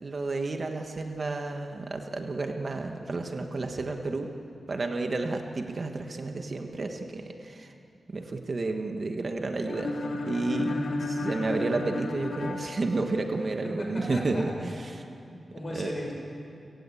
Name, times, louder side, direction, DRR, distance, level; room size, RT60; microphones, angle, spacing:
voice 1, 0.0-4.3 4.7-7.7 8.1-9.9 10.2-10.7 11.1-15.0 15.7-15.9, right 3 dB, 35° right, 4 dB, 1.4 m, -31 dB
sound 1, 9.7-13.6, left 2 dB, 65° left, 3.2 m, -33 dB
voice 2, 13.6-14.5 14.8-16.1, left 1 dB, 35° left, 0 dB, 6.2 m, -39 dB
30.0 x 17.5 x 8.5 m, 2.6 s
wide cardioid pair, 170°, 0 cm